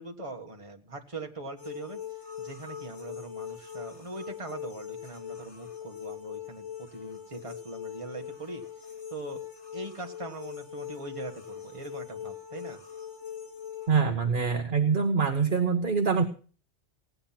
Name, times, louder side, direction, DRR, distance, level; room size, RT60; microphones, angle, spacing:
voice 1, 0.0-2.0 2.4-8.6 9.1-9.4 9.7-12.8, right 2 dB, 25° right, 3 dB, 1.7 m, -41 dB
sound 1, 1.6-14.0, left 8 dB, 70° left, 2.7 m, -41 dB
voice 2, 13.9-16.3, right 5 dB, 50° right, 6 dB, 1.2 m, -25 dB
17.0 x 9.6 x 5.8 m, 0.39 s
omnidirectional pair, 1.2 m